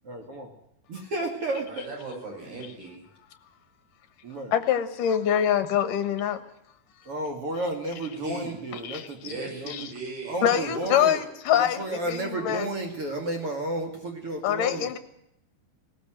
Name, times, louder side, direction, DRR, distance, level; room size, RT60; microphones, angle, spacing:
voice 1, 0.0-0.5 0.9-1.7 4.2-4.5 7.1-9.9 10.3-11.2 11.5-14.9, right 2 dB, 40° right, 3 dB, 3.0 m, -32 dB
voice 2, 1.7-3.0 8.2-8.6 9.2-10.7, right 3 dB, 70° right, -1 dB, 8.1 m, -38 dB
voice 3, 4.5-6.4 8.7-9.1 9.7-9.8 10.4-12.7 14.4-15.0, left 9 dB, 65° left, 10 dB, 2.9 m, -25 dB
18.5 x 18.5 x 7.8 m, 0.79 s
omnidirectional pair, 4.2 m